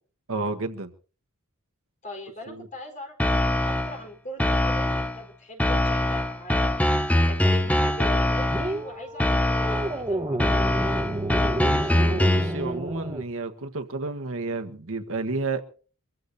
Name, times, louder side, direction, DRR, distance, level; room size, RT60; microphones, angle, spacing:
voice 1, 0.3-0.9 2.5-2.7 11.6-15.6, right 3 dB, 65° right, 1.4 m, -31 dB
voice 2, 2.0-6.8 7.3-10.5, left 1 dB, 35° left, 4.3 m, -40 dB
sound 1, 3.2-4.0 4.4-5.2 5.6-8.8 9.2-10.0 10.4-12.6, left 1 dB, 5° left, 0.8 m, -23 dB
sound 2, 8.5-13.3, right 1 dB, 20° right, 1.3 m, -31 dB
24.5 x 15.5 x 2.7 m
head